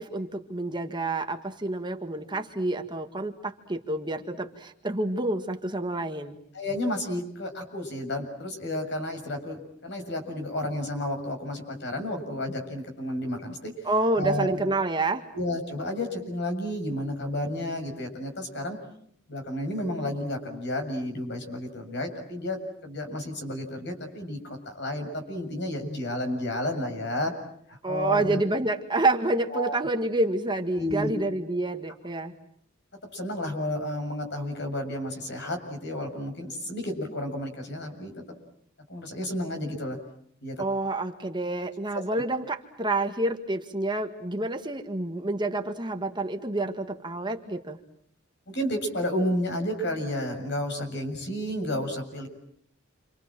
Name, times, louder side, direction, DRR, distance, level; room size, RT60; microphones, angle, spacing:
voice 1, 0.0-6.4 13.8-15.2 27.8-32.3 40.6-47.8, right 2 dB, 25° right, 5 dB, 1.8 m, -28 dB
voice 2, 6.5-14.6 15.3-18.8 19.3-22.6 22.8-27.3 27.7-28.4 29.5-29.8 30.8-31.1 33.1-38.1 38.9-40.0 40.4-40.6 41.9-42.0 48.5-52.3, left 1 dB, 60° left, 5 dB, 7.3 m, -31 dB
29.5 x 26.5 x 7.6 m, 0.66 s
head